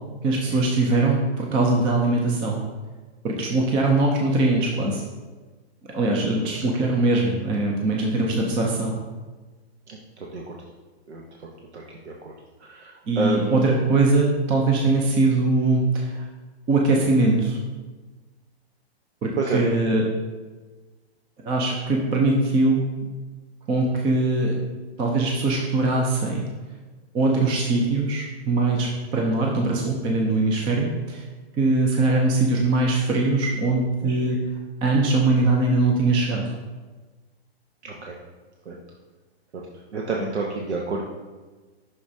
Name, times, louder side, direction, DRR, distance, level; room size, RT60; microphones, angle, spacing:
voice 1, 0.2-2.6 3.2-5.0 5.9-8.9 13.1-16.2 16.7-17.6 19.2-20.1 21.4-22.8 23.7-24.6 25.0-26.4 27.1-31.2 31.6-34.4 34.8-36.4, right 2 dB, 15° right, 0 dB, 0.5 m, -21 dB
voice 2, 13.2-13.6 19.4-19.6 34.1-34.2 38.1-38.2 38.7-38.8 39.9-41.1, right 4 dB, 85° right, -1 dB, 1.0 m, -27 dB
8.2 x 6.1 x 2.7 m, 1.3 s
hypercardioid pair, 140°, 33 cm